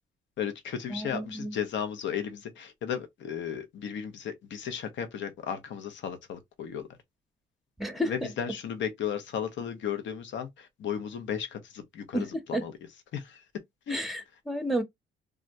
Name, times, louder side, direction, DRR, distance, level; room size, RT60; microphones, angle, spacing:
voice 1, 0.4-6.9 8.0-12.7 13.1-13.4 13.9-14.1, left 8 dB, 70° left, 0.7 m, -35 dB
voice 2, 0.9-1.5 7.8-8.1 12.1-12.2 12.5-12.6 13.9-14.8, equal, ahead, 0.8 m, -31 dB
3.5 x 2.1 x 2.6 m
cardioid pair, 90°, 20 cm